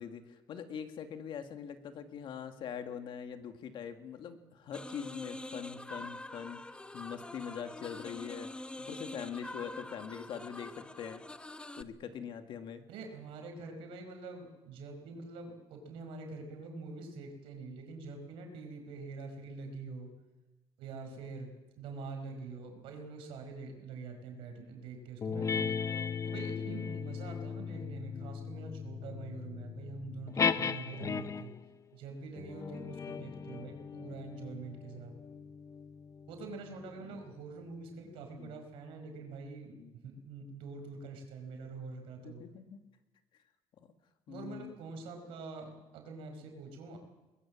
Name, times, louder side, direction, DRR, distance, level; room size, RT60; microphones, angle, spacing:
voice 1, 0.0-11.2 11.8-12.8 34.1-34.2 37.0-37.2 38.4-38.6 39.8-39.9 42.2-42.8 44.3-44.7, left 8 dB, 65° left, 7 dB, 2.2 m, -43 dB
sound 1, 4.7-11.8, left 2 dB, 10° left, 0.9 m, -45 dB
voice 2, 12.9-20.1 20.8-21.5 21.8-25.7 26.2-31.5 31.9-35.1 36.3-39.7 40.0-42.4 44.3-47.0, right 3 dB, 90° right, 4 dB, 5.0 m, -45 dB
sound 2, 25.2-31.6 32.4-37.3, left 6 dB, 35° left, 0.8 m, -37 dB
22.5 x 21.0 x 7.5 m, 1.1 s
cardioid pair, 110°, 9 cm